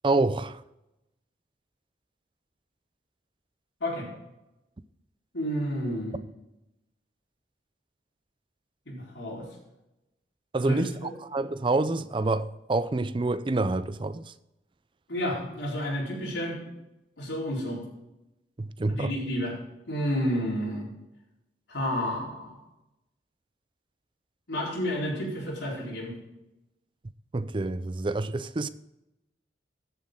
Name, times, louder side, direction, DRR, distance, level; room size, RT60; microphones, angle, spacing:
voice 1, 0.0-0.6 10.5-14.3 18.6-19.1 27.3-28.7, right 2 dB, 25° right, 0.4 m, -27 dB
voice 2, 5.3-6.2 8.9-9.5 10.6-11.1 15.1-16.6 17.2-17.8 19.0-19.5 19.9-20.9 21.7-22.6 24.5-26.2, equal, 90° left, 4.3 m, -30 dB
14.0 x 7.3 x 3.8 m
head